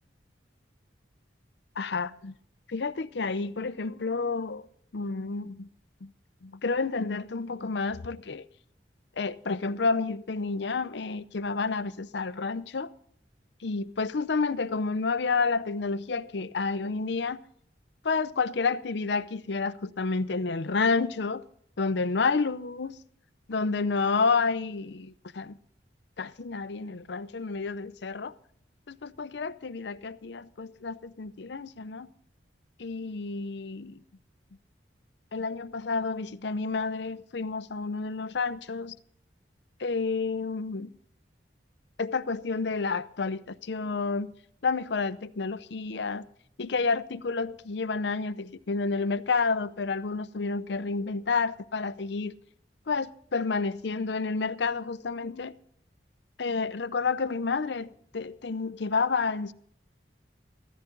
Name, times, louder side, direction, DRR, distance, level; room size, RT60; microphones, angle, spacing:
voice 1, 1.8-2.3 2.7-4.6 4.9-5.7 6.0-6.1 6.4-8.4 9.2-12.9 13.6-17.4 18.0-21.4 21.8-23.0 23.5-25.6 26.2-28.3 28.9-32.1 32.8-34.0 35.3-39.0 39.8-40.9 42.0-44.3 44.6-46.3 46.6-52.3 52.9-55.5 56.4-59.5, left 4 dB, 70° left, 0.6 m, -30 dB
16.0 x 13.5 x 3.8 m
head